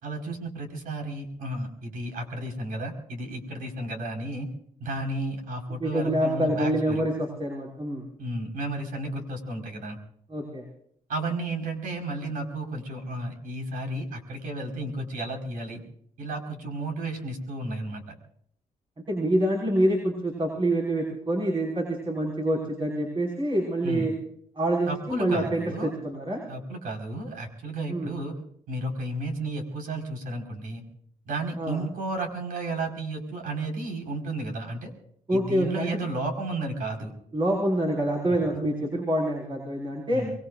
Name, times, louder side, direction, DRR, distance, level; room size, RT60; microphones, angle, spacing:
voice 1, 0.0-4.5 4.8-7.0 8.2-10.0 11.1-15.8 16.2-18.1 23.8-24.1 24.9-25.9 26.5-28.3 28.7-30.8 31.2-34.9 35.3-37.1 38.3-38.4 40.1-40.3, right 2 dB, 75° right, 3 dB, 5.0 m, -33 dB
voice 2, 5.8-8.0 10.3-10.6 19.1-24.1 24.6-26.4 27.9-28.1 31.6-31.8 35.3-36.0 37.3-40.2, right 1 dB, 35° right, -1 dB, 5.7 m, -26 dB
25.0 x 22.0 x 2.6 m, 0.67 s
cardioid pair, 100°, 14 cm